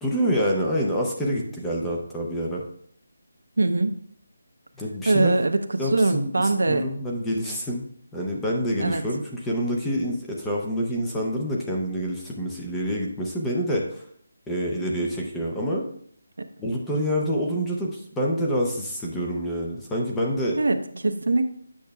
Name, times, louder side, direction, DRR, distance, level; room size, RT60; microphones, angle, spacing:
voice 1, 0.0-2.6 4.8-5.4 5.8-7.9 8.1-14.1 14.5-15.8 16.6-20.6, equal, 5° left, -3 dB, 0.5 m, -27 dB
voice 2, 3.6-3.9 5.1-6.8 8.8-9.0 16.4-16.5 20.6-20.8 21.0-21.5, right 2 dB, 85° right, 8 dB, 0.7 m, -22 dB
8.5 x 6.4 x 2.3 m, 0.64 s
figure-of-eight pair, 180°, 0 cm